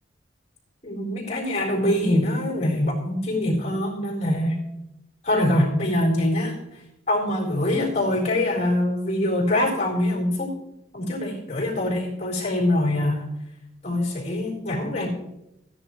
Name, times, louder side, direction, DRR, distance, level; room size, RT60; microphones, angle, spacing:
voice 1, 0.8-4.6 5.2-6.6 7.1-10.5 10.9-13.3 13.8-15.1, left 1 dB, 35° left, -3 dB, 3.8 m, -24 dB
16.0 x 10.5 x 3.1 m, 0.86 s
head